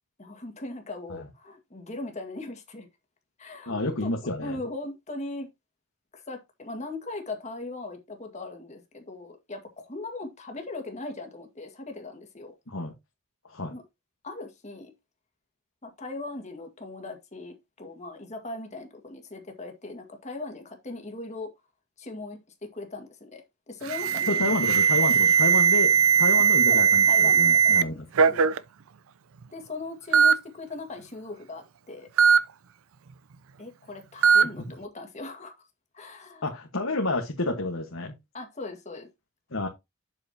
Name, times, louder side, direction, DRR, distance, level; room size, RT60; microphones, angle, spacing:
voice 1, 0.2-2.9 3.4-4.1 4.4-5.5 6.1-12.5 13.7-13.8 14.2-14.9 15.8-21.5 22.0-24.5 26.7-28.0 28.3-28.5 29.5-32.1 33.6-35.5 35.9-36.4 38.3-39.1, left 2 dB, 35° left, 1.8 m, -39 dB
voice 2, 3.7-4.6 12.7-12.9 13.5-13.7 24.3-25.9 26.2-28.0 34.6-34.7 36.4-38.1 39.5-39.7, left 2 dB, 75° left, 1.4 m, -29 dB
Alarm, 23.9-27.8 28.2-28.6 29.4-29.5 30.1-30.3 32.2-32.4 34.2-34.4, right 6 dB, 85° right, 0.5 m, -19 dB
7.7 x 7.6 x 2.8 m
head